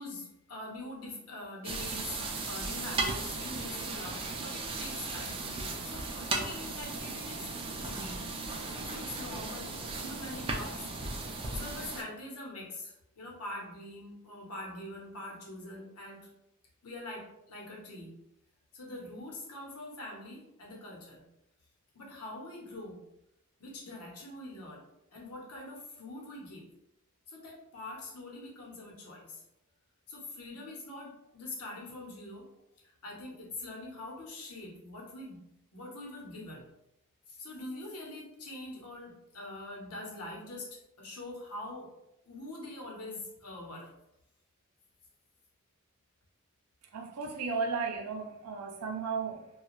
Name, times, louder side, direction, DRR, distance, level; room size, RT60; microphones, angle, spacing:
voice 1, 0.0-5.4 5.8-7.5 7.8-8.2 8.7-10.9 11.5-16.3 16.8-18.1 18.7-21.2 21.9-23.0 23.6-26.7 27.3-29.4 30.1-32.5 32.8-35.4 35.7-36.7 37.3-41.9 42.2-43.9, left 2 dB, 80° left, -2 dB, 0.9 m, -44 dB
sound 1, 1.6-12.0, right 3 dB, 25° right, 0.3 m, -36 dB
voice 2, 46.9-49.5, right 5 dB, 90° right, 2 dB, 0.5 m, -34 dB
2.5 x 2.3 x 3.0 m, 0.84 s
head